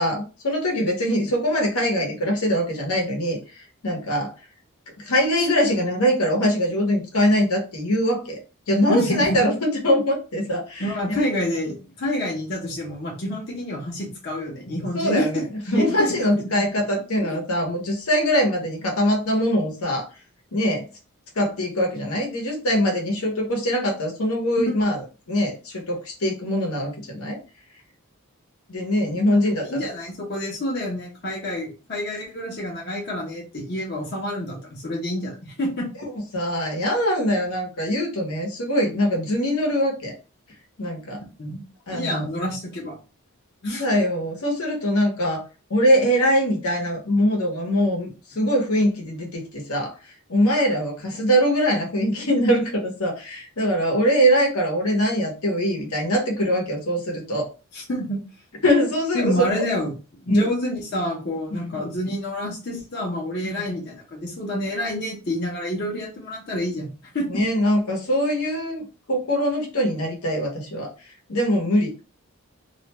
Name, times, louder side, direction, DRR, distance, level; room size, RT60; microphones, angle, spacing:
voice 1, 0.0-4.3 5.0-8.4 8.7-11.2 14.9-15.4 15.7-20.1 20.5-20.8 21.4-27.4 28.7-29.9 36.0-40.1 40.8-41.2 41.9-42.3 43.6-45.4 45.7-57.5 58.6-59.5 60.3-60.5 61.5-61.8 63.4-63.7 67.3-70.9 71.3-72.1, equal, 80° left, 0 dB, 0.9 m, -23 dB
voice 2, 8.9-9.4 10.8-16.1 24.6-24.7 29.6-35.9 41.4-41.6 41.9-43.0 43.6-43.8 57.7-58.2 59.1-59.9 60.2-66.9 67.1-67.4, left 1 dB, 45° left, -3 dB, 0.7 m, -28 dB
2.4 x 2.2 x 2.9 m, 0.32 s
head